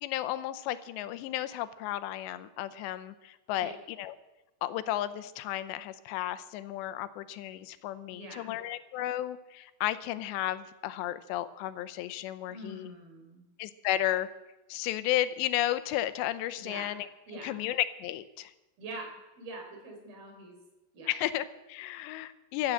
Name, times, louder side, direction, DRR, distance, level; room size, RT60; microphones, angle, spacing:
voice 1, 0.0-4.2 4.6-12.9 13.6-14.3 14.7-17.1 17.4-18.5 21.1-22.7, left 13 dB, 90° left, 13 dB, 3.0 m, -33 dB
voice 2, 8.1-8.6 12.5-13.5 16.6-16.9 17.3-17.6 18.8-20.6 20.9-21.1, right 2 dB, 60° right, 3 dB, 5.5 m, -44 dB
15.0 x 12.0 x 7.5 m, 1.0 s
omnidirectional pair, 5.0 m